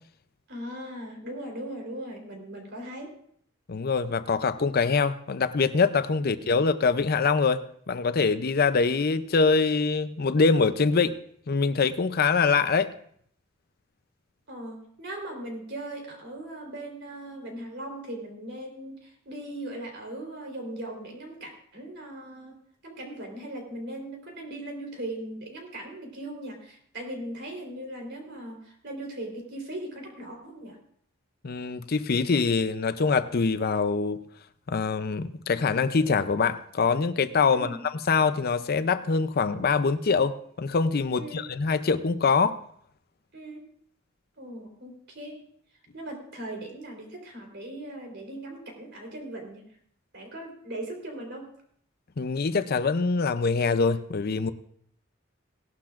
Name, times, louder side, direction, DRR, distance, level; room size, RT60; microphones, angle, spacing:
voice 1, 0.5-3.1 6.2-6.5 14.5-22.5 22.8-30.8 37.5-37.8 41.1-41.5 43.3-43.6 44.4-45.4 45.9-49.6 50.1-51.5, right 1 dB, 60° right, 1 dB, 3.8 m, -39 dB
voice 2, 3.7-7.6 7.9-11.2 11.5-12.9 31.4-34.2 34.7-42.6 52.2-54.5, left 4 dB, 50° left, 12 dB, 0.6 m, -24 dB
18.0 x 11.5 x 2.5 m, 0.63 s
head